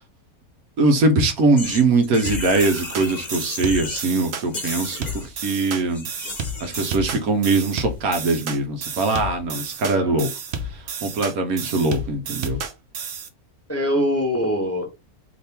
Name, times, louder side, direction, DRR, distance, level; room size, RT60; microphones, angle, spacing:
voice 1, 0.8-6.1 6.6-10.3 11.0-12.6, right 3 dB, 70° right, 1.4 m, -21 dB
sound 1, 1.6-4.2 4.4-7.0, left 3 dB, 30° left, 1.2 m, -34 dB
sound 2, 2.3-13.3, right 3 dB, 55° right, 0.9 m, -31 dB
voice 2, 9.9-10.3 13.7-15.0, equal, 15° left, 0.7 m, -23 dB
4.3 x 3.2 x 3.4 m
omnidirectional pair, 1.6 m